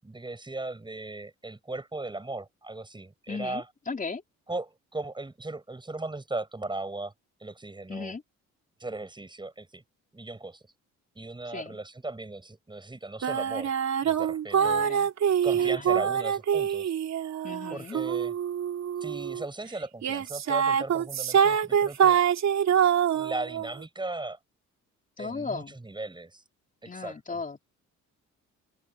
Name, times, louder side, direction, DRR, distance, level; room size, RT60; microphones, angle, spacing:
voice 1, 0.0-3.7 4.5-7.1 7.4-8.1 8.8-9.8 10.1-10.6 11.1-13.7 14.0-14.9 15.4-16.9 17.7-18.3 19.0-22.2 23.1-24.4 25.2-26.4 26.8-27.4, right 2 dB, 15° right, 6.7 m, -37 dB
voice 2, 3.3-4.2 7.9-8.2 11.5-11.8 14.6-15.1 15.5-16.1 17.4-18.0 25.2-25.8 26.9-27.6, left 4 dB, 25° left, 4.4 m, -37 dB
sound 1, 13.2-19.4 20.0-23.7, right 8 dB, 65° right, 3.2 m, -25 dB
open air
cardioid pair, 90°, 30 cm